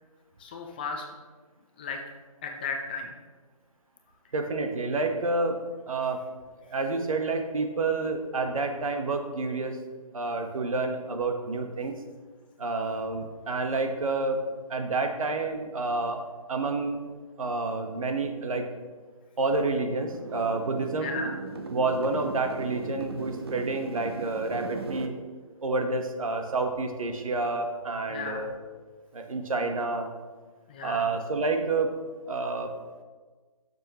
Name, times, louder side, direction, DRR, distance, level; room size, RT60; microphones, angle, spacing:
voice 1, 0.4-1.1 1.8-2.0 2.4-3.1 21.0-21.3 28.1-28.5 30.7-31.1, left 4 dB, 15° left, 2 dB, 0.5 m, -35 dB
voice 2, 4.3-6.2 6.6-9.8 10.1-11.9 12.6-14.4 14.7-16.2 16.5-17.0 17.4-18.6 19.4-21.2 21.7-25.1 25.6-28.5 29.1-30.1 30.8-32.0 32.3-32.7, right 3 dB, 65° right, 5 dB, 1.2 m, -29 dB
sound 1, 20.0-25.1, right 4 dB, 40° right, 0.7 m, -37 dB
12.0 x 6.7 x 3.0 m, 1.4 s
hypercardioid pair, 160°, 19 cm